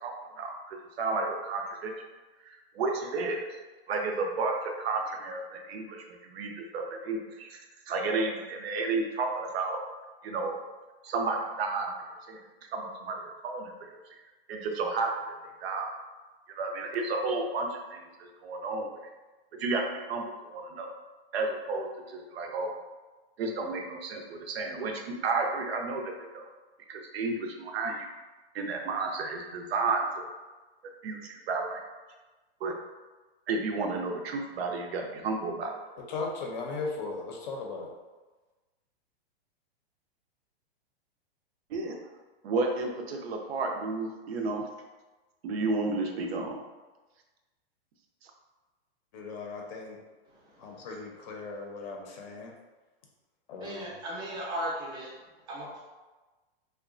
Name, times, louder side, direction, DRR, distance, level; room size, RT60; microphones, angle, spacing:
voice 1, 0.0-1.9 2.4-3.5 3.9-7.6 7.9-9.8 10.2-10.6 11.0-11.9 12.3-14.2 14.5-15.3 15.6-16.0 16.5-18.9 19.6-20.2 20.5-20.9 21.3-22.7 23.4-26.5 26.9-28.1 28.5-30.3 31.0-31.8 32.6-32.7 33.5-35.8 41.7-42.0 42.4-44.7 45.4-46.6 48.2-48.3, right 3 dB, 75° right, 2 dB, 0.6 m, -32 dB
voice 2, 36.0-37.9 49.1-50.0 50.6-52.5 53.5-54.0, left 3 dB, 45° left, 0 dB, 0.6 m, -37 dB
voice 3, 53.6-55.1 55.5-55.8, right 1 dB, 15° right, -5 dB, 0.5 m, -36 dB
2.8 x 2.2 x 2.4 m, 1.2 s
hypercardioid pair, 145°, 31 cm